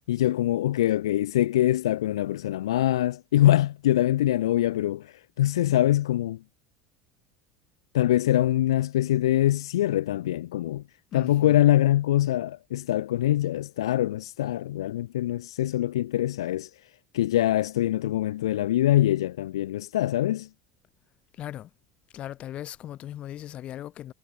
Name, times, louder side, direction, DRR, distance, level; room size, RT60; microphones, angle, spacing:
voice 1, 0.1-6.4 7.9-10.8 11.1-16.7 17.1-20.5, left 13 dB, 75° left, 0.6 m, -24 dB
voice 2, 11.1-11.6 21.3-21.7 22.1-24.1, left 12 dB, 45° left, 1.1 m, -38 dB
hypercardioid pair, 75°, 3 cm